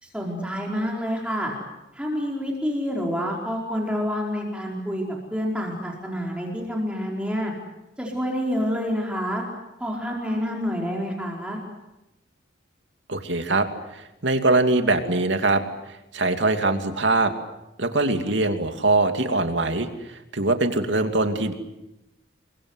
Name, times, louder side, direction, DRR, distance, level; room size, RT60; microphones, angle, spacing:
voice 1, 0.0-1.5 1.9-5.0 5.3-7.5 8.0-9.4 9.8-11.6, equal, 5° right, -1 dB, 4.7 m, -28 dB
voice 2, 13.1-13.7 13.9-17.3 17.8-21.5, right 2 dB, 80° right, 6 dB, 2.7 m, -23 dB
29.0 x 23.5 x 8.1 m, 0.92 s
head